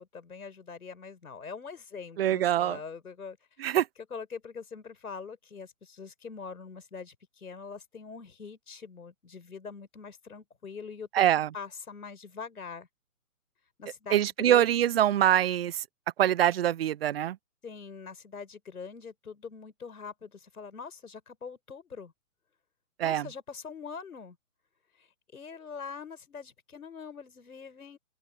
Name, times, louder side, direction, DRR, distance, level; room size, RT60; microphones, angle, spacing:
voice 1, 0.0-3.4 4.1-11.3 11.5-12.9 13.8-14.7 17.6-22.1 23.0-24.4 25.3-28.0, left 5 dB, 85° left, 5.5 m, -43 dB
voice 2, 2.2-2.8 3.6-3.9 11.1-11.5 14.1-15.8 16.2-17.4 23.0-23.3, right 11 dB, 45° right, 0.4 m, -24 dB
open air
hypercardioid pair, 145°, 43 cm